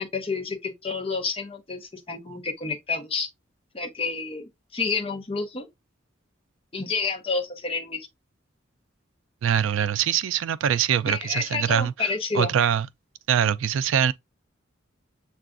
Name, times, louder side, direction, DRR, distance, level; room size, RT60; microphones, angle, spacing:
voice 1, 0.0-3.3 3.7-5.7 6.7-8.1 11.1-12.5, left 4 dB, 30° left, 0.7 m, -29 dB
voice 2, 9.4-11.9 12.3-12.9 13.3-14.1, right 9 dB, 75° right, 0.3 m, -23 dB
6.7 x 2.4 x 2.4 m
head